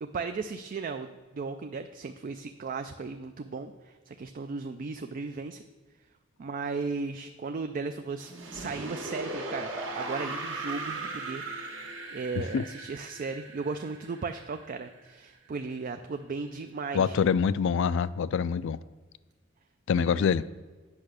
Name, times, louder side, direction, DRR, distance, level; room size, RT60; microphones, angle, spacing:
voice 1, 0.0-5.6 6.4-11.4 12.1-17.2 20.0-20.3, right 4 dB, 40° right, 8 dB, 0.4 m, -36 dB
sound 1, 8.2-15.1, right 2 dB, 65° right, 1.7 m, -38 dB
voice 2, 16.9-18.8 19.9-20.5, left 6 dB, 65° left, 17 dB, 0.3 m, -25 dB
8.6 x 5.7 x 6.3 m, 1.3 s
head